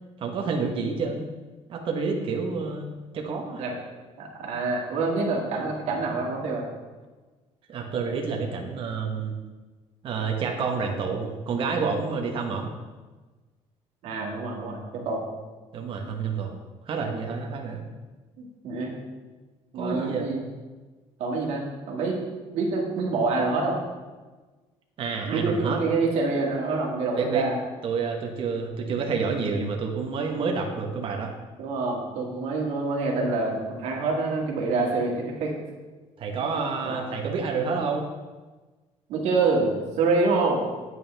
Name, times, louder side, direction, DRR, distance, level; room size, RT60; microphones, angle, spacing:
voice 1, 0.2-1.3 1.7-2.9 3.1-3.6 7.7-9.4 10.0-12.7 15.7-16.5 16.9-17.8 19.7-20.3 25.0-25.8 27.1-27.5 27.8-31.3 36.2-38.1, right 5 dB, 45° right, 1 dB, 1.1 m, -28 dB
voice 2, 4.2-6.7 14.0-15.2 18.4-18.9 19.7-20.4 21.2-22.3 22.5-23.8 25.3-27.6 31.6-35.5 36.8-37.0 39.1-40.6, right 3 dB, 70° right, -1 dB, 2.0 m, -26 dB
9.1 x 8.4 x 3.4 m, 1.3 s
cardioid pair, 160°, 12 cm